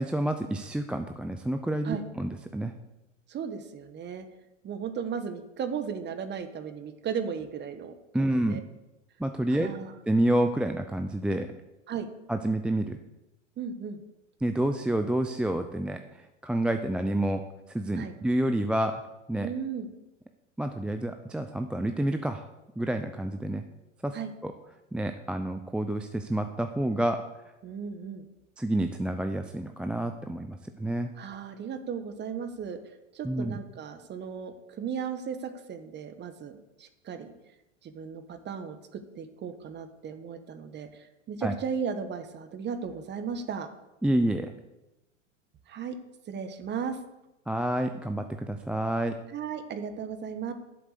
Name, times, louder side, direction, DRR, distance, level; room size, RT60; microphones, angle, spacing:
voice 1, 0.0-2.7 8.1-8.6 9.2-9.7 10.1-11.5 12.3-13.0 14.4-17.4 17.7-19.0 19.3-19.5 20.6-22.4 22.8-23.6 24.0-24.2 24.4-24.5 24.9-27.2 28.6-31.1 33.2-33.6 41.4-41.5 44.0-44.5 47.5-49.2, right 1 dB, 5° right, 6 dB, 0.5 m, -28 dB
voice 2, 3.3-4.2 4.6-8.6 9.5-9.9 11.9-12.1 13.6-14.0 18.0-18.1 19.4-19.9 24.1-24.3 27.6-28.3 31.2-32.8 33.1-37.3 37.8-43.7 45.7-45.9 46.3-47.0 49.3-50.5, right 7 dB, 30° right, 9 dB, 1.4 m, -36 dB
11.5 x 7.7 x 6.7 m, 0.97 s
hypercardioid pair, 105°, 38 cm